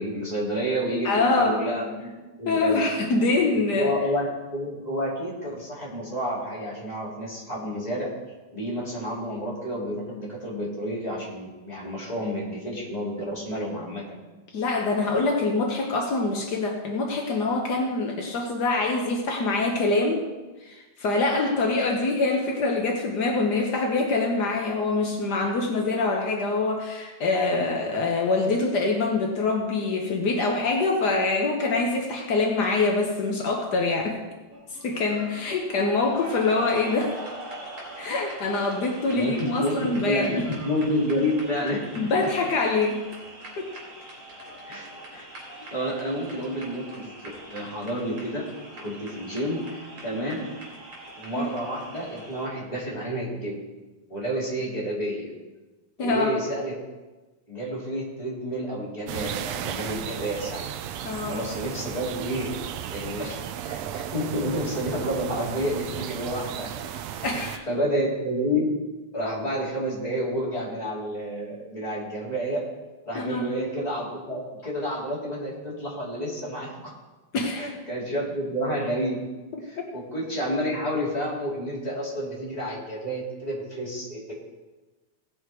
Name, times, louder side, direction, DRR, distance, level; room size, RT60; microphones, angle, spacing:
voice 1, 0.0-2.1 2.4-2.8 3.7-4.3 4.5-8.1 8.5-14.0 39.1-41.8 44.7-45.3 45.7-47.1 47.5-48.5 48.8-50.5 51.1-53.6 54.1-55.3 56.0-56.7 57.5-60.7 61.2-62.5 62.9-67.2 67.7-68.7 69.1-72.6 73.0-76.9 77.5-79.2 79.6-84.4, equal, 15° left, -6 dB, 3.0 m, -30 dB
voice 2, 1.0-1.6 2.5-3.9 14.5-20.2 20.6-34.2 34.8-37.2 38.0-40.5 42.0-43.1 43.6-43.7 51.4-51.5 56.0-56.3 61.0-61.5 67.2-67.6 73.1-73.5 77.3-77.7, left 3 dB, 75° left, 1 dB, 0.9 m, -25 dB
sound 1, 34.5-52.5, right 1 dB, 45° right, 3.7 m, -43 dB
sound 2, 59.1-67.6, right 10 dB, 80° right, 1.6 m, -35 dB
17.5 x 6.4 x 4.5 m, 1.2 s
omnidirectional pair, 3.4 m